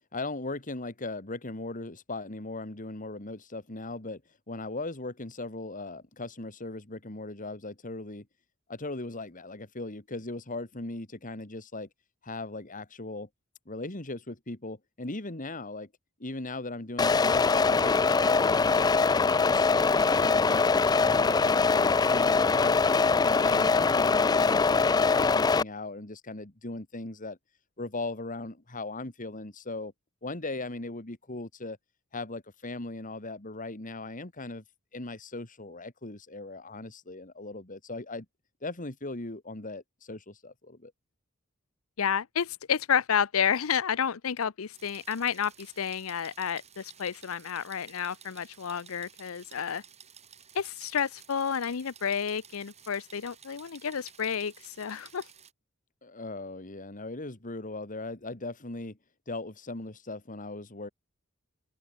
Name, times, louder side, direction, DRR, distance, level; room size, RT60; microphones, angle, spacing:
voice 1, 0.1-4.2 4.5-8.3 8.7-11.9 12.2-13.3 13.7-15.9 16.2-20.7 21.0-22.8 23.2-27.4 27.8-29.9 30.2-31.8 32.1-34.6 34.9-38.3 38.6-40.9 56.0-59.0 59.3-60.9, left 2 dB, 40° left, 2.3 m, -38 dB
sound 1, 17.0-25.6, left 4 dB, 20° left, 0.3 m, -23 dB
voice 2, 42.0-49.8 50.5-55.3, left 7 dB, 80° left, 0.6 m, -30 dB
sound 2, 44.7-55.5, right 7 dB, 30° right, 7.3 m, -54 dB
open air
head